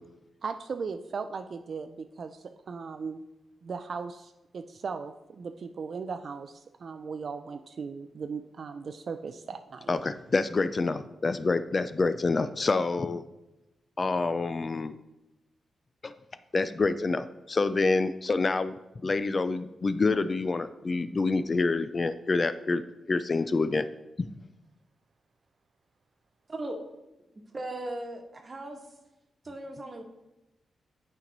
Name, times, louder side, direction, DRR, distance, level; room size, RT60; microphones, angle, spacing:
voice 1, 0.4-3.2 3.6-9.9, right 5 dB, 55° right, 8 dB, 0.3 m, -37 dB
voice 2, 9.9-13.2 14.0-14.9 16.0-16.1 16.5-18.7 19.0-22.8 23.1-23.9 24.2-24.3, left 3 dB, 35° left, 12 dB, 0.3 m, -27 dB
voice 3, 26.5-26.8 27.5-28.8 29.4-30.0, right 1 dB, 30° right, 4 dB, 1.1 m, -37 dB
8.6 x 4.5 x 3.9 m, 0.96 s
cardioid pair, 105°, 0 cm